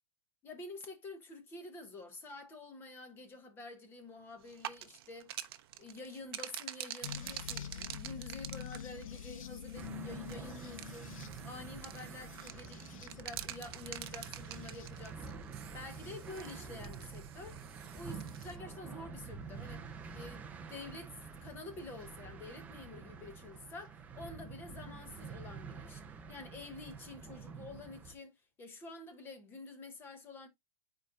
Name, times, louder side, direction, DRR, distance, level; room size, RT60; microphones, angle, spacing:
voice 1, 0.4-5.3 5.8-15.5 15.7-17.7 17.9-19.8 20.1-30.5, left 3 dB, 15° left, 0.9 m, -49 dB
sound 1, 4.4-18.6, right 12 dB, 45° right, 0.7 m, -47 dB
sound 2, 7.0-15.2 15.9-16.7 17.8-18.5 20.2-20.3 22.0-22.1, left 9 dB, 80° left, 1.0 m, -48 dB
sound 3, 9.7-28.2, right 5 dB, 10° right, 0.5 m, -48 dB
9.1 x 4.7 x 2.4 m
supercardioid pair, 170°, 17 cm